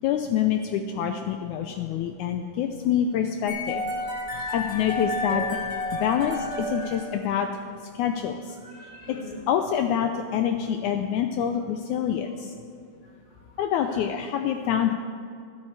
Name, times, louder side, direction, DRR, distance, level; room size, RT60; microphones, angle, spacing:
voice 1, 0.0-3.8 4.3-5.4 5.9-7.5 8.0-8.6 9.1-9.2 9.5-12.5 13.6-14.9, left 9 dB, 85° left, 6 dB, 1.7 m, -26 dB
sound 1, 3.5-7.6, left 2 dB, 20° right, 2.8 m, -31 dB
voice 2, 4.0-4.5 5.0-5.1 6.1-7.1 8.6-9.4 13.0-13.4 13.9-14.0, equal, 45° right, -4 dB, 0.6 m, -47 dB
12.5 x 12.0 x 4.7 m, 2.4 s
omnidirectional pair, 4.0 m